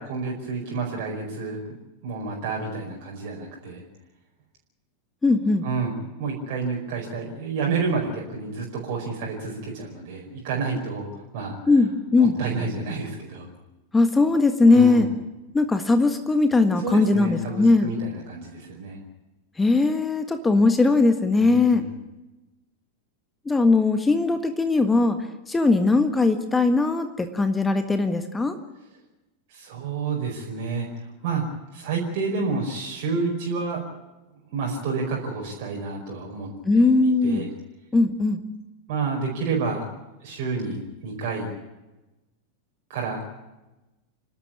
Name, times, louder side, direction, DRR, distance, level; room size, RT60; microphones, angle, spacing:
voice 1, 0.0-1.6 2.0-3.8 5.6-11.6 12.2-13.5 14.7-15.1 16.8-19.0 21.3-21.9 29.5-30.9 31.2-31.4 31.7-33.8 34.5-36.9 37.2-37.5 38.9-39.8 40.2-41.5 42.9-43.2, right 4 dB, 50° right, -2 dB, 5.1 m, -29 dB
voice 2, 5.2-5.6 11.7-12.3 13.9-15.1 15.5-17.9 19.6-21.8 23.4-25.2 25.5-28.6 36.6-37.4 37.9-38.4, left 3 dB, 10° left, 8 dB, 1.5 m, -19 dB
28.5 x 12.5 x 8.7 m, 1.0 s
figure-of-eight pair, 90°, 0 cm